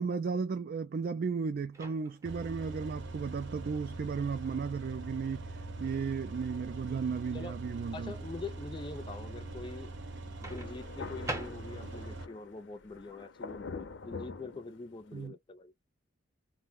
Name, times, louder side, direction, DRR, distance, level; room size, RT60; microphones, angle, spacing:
voice 1, 0.0-5.5 5.8-8.1 15.1-15.3, right 5 dB, 50° right, 0.3 m, -34 dB
Microwave oven, 1.7-2.4 4.4-4.6 10.4-12.0, right 2 dB, 15° right, 0.7 m, -43 dB
sound 1, 2.2-12.3, right 2 dB, 65° right, 0.8 m, -42 dB
voice 2, 7.9-9.9 10.4-15.7, left 3 dB, 25° left, 0.4 m, -44 dB
Thunder, 10.5-15.3, left 4 dB, 70° left, 0.6 m, -45 dB
2.6 x 2.1 x 3.4 m
head